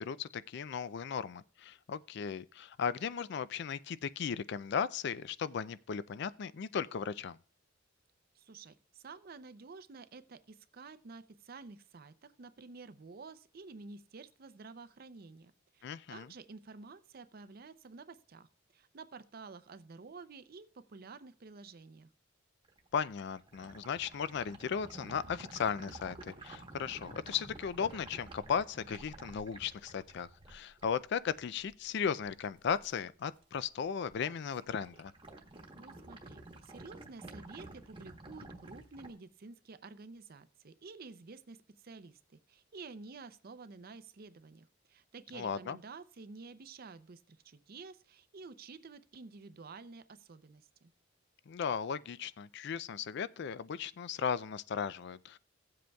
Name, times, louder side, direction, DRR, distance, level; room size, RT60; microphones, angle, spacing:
voice 1, 0.0-7.4 15.8-16.3 22.9-35.1 45.3-45.8 51.5-55.4, left 7 dB, 55° left, 0.4 m, -36 dB
voice 2, 8.3-18.5 18.7-22.1 35.8-50.9, right 4 dB, 45° right, 0.5 m, -51 dB
sound 1, 22.6-33.0 33.3-33.8 34.1-39.1, right 2 dB, 25° right, 1.1 m, -51 dB
16.5 x 7.7 x 2.3 m
head